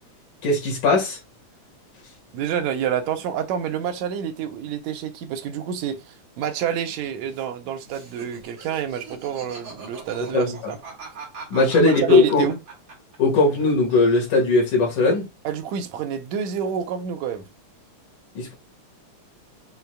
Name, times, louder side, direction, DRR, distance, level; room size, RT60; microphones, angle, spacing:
voice 1, 0.4-1.2 10.3-10.7 11.5-12.5 13.2-15.3 18.4-18.6, left 3 dB, 80° left, 3.1 m, -19 dB
voice 2, 2.3-10.8 11.6-12.6 15.4-17.5, right 8 dB, 75° right, 1.9 m, -28 dB
Laughter, 7.9-13.6 13.9-14.7, right 4 dB, 45° right, 2.7 m, -41 dB
7.1 x 3.2 x 2.2 m
omnidirectional pair, 3.5 m